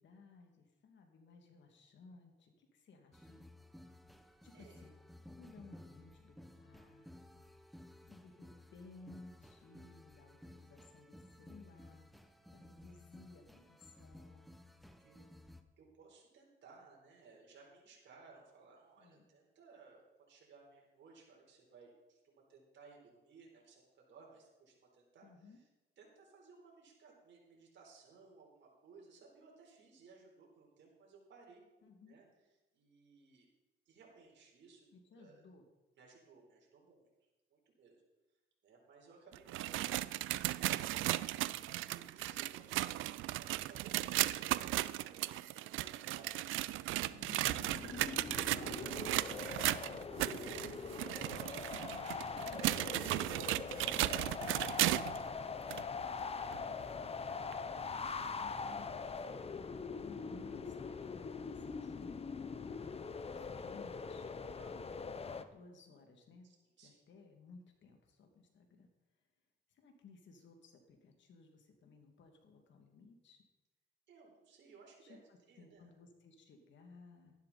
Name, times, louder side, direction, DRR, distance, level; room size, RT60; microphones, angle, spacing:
voice 1, 0.0-3.5 4.4-4.9 5.4-7.4 8.1-12.1 12.5-14.5 19.0-19.3 25.2-25.6 31.8-32.2 34.9-35.7 56.3-57.0 57.7-64.3 65.3-66.5 66.8-68.9 69.7-73.4 75.0-77.3, left 4 dB, 65° left, 3 dB, 2.5 m, -59 dB
sound 1, 3.1-15.6, left 1 dB, ahead, 1.0 m, -57 dB
voice 2, 15.0-15.4 15.8-25.7 26.0-31.6 32.0-32.3 32.7-33.5 33.9-34.9 35.1-35.4 36.0-37.1 37.5-38.0 38.6-41.3 41.6-55.1 55.4-56.3 64.5-64.9 66.4-67.0 74.1-75.2 75.5-75.9, right 4 dB, 65° right, -1 dB, 4.3 m, -61 dB
sound 2, 39.3-55.2 55.7-55.8 56.5-56.6 57.5-57.6, right 16 dB, 85° right, 0.4 m, -36 dB
sound 3, 47.1-65.4, left 5 dB, 30° left, 0.8 m, -43 dB
12.5 x 11.5 x 4.3 m, 1.1 s
cardioid pair, 90°, 20 cm